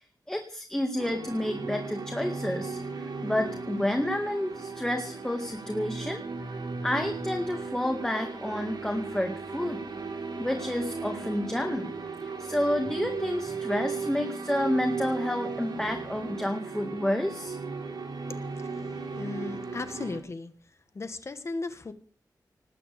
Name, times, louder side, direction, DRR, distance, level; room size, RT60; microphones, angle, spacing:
voice 1, 0.3-6.2 6.8-9.8 10.4-11.9 12.2-17.6, left 1 dB, 5° left, 3 dB, 2.1 m, -30 dB
sound 1, 1.0-20.2, right 4 dB, 75° right, 4.5 m, -36 dB
voice 2, 19.1-20.5 20.9-21.9, left 3 dB, 40° left, 10 dB, 1.6 m, -36 dB
19.5 x 7.8 x 8.6 m, 0.41 s
wide cardioid pair, 160°, 7 cm